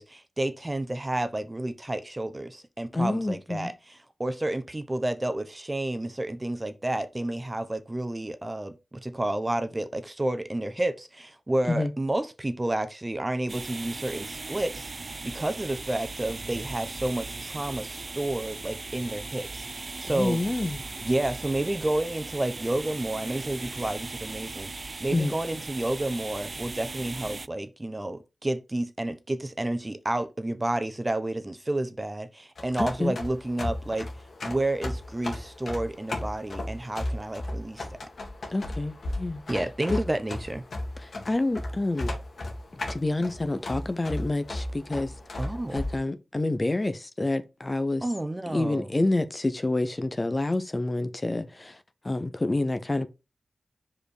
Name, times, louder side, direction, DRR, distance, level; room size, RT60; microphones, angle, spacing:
voice 1, 0.0-14.9 15.2-19.6 20.0-20.4 21.0-34.1 34.4-37.9 39.5-40.6 45.4-45.8 48.0-48.9, right 1 dB, 25° right, 0.9 m, -30 dB
voice 2, 2.9-3.7 11.7-11.9 20.0-20.8 25.1-25.3 32.8-33.1 38.5-39.4 39.9-40.0 41.0-42.1 42.9-45.1 45.7-48.0 48.5-51.8 52.0-53.1, left 2 dB, 30° left, 0.8 m, -28 dB
sound 1, 13.5-27.5, right 3 dB, 50° right, 0.3 m, -38 dB
sound 2, 32.6-46.0, left 1 dB, 70° left, 2.0 m, -35 dB
5.1 x 4.2 x 5.0 m
cardioid pair, 65°, 0 cm